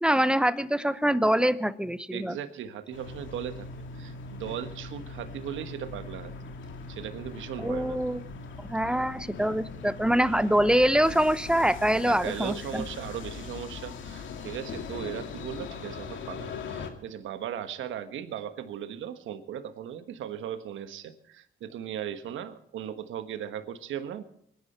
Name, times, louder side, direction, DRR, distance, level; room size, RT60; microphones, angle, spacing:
voice 1, 0.0-2.4 7.6-8.2 8.6-12.8, right 1 dB, 5° right, 14 dB, 0.8 m, -24 dB
voice 2, 2.1-3.7 3.9-6.3 6.9-8.0 12.0-24.2, right 9 dB, 80° right, 9 dB, 1.4 m, -37 dB
sound 1, 2.9-16.9, left 4 dB, 75° left, 2.2 m, -40 dB
24.5 x 10.5 x 4.4 m, 0.69 s
cardioid pair, 90°, 20 cm